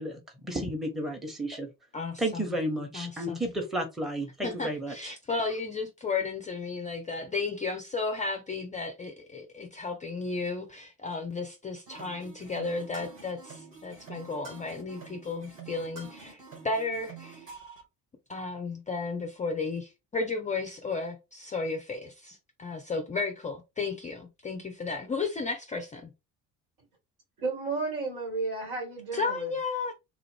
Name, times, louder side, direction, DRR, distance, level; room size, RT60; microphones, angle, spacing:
voice 1, 0.0-1.7 2.2-5.1, right 1 dB, ahead, 0.9 m, -32 dB
voice 2, 1.9-2.6 2.9-3.4 4.4-17.5 18.3-26.1 29.1-29.9, left 3 dB, 15° left, 0.5 m, -34 dB
sound 1, 11.9-17.8, right 5 dB, 85° right, 1.3 m, -47 dB
voice 3, 27.4-29.5, right 3 dB, 65° right, 1.8 m, -32 dB
3.4 x 2.4 x 3.2 m
figure-of-eight pair, 50°, 49 cm